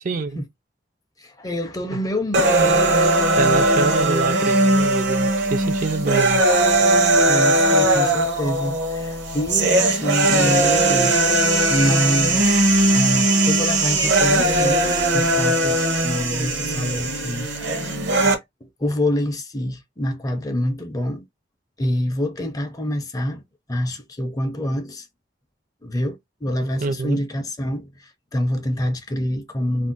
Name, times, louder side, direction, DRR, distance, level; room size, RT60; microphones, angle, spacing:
voice 1, 0.0-0.4 3.4-6.4 26.8-27.2, right 4 dB, 45° right, 0.4 m, -25 dB
voice 2, 1.2-2.8 7.3-11.2 11.7-12.6 12.9-17.9 18.6-21.2 21.8-23.4 23.7-25.1 25.8-29.9, equal, 20° left, 0.5 m, -26 dB
sound 1, 2.3-18.4, right 2 dB, 70° right, 0.8 m, -19 dB
2.5 x 2.0 x 3.8 m
head